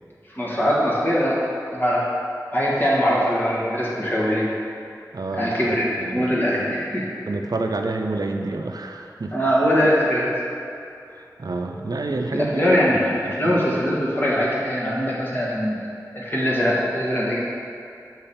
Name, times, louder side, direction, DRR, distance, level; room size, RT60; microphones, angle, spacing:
voice 1, 0.3-1.4 1.7-2.1 2.5-4.5 5.3-5.8 6.1-7.1 9.3-10.3 12.4-15.8 16.1-17.4, equal, 30° left, -6 dB, 1.6 m, -21 dB
voice 2, 5.1-6.8 7.3-9.4 11.1-13.6, right 2 dB, 65° right, 4 dB, 0.4 m, -29 dB
6.2 x 5.1 x 4.3 m, 2.5 s
wide cardioid pair, 50°, 7 cm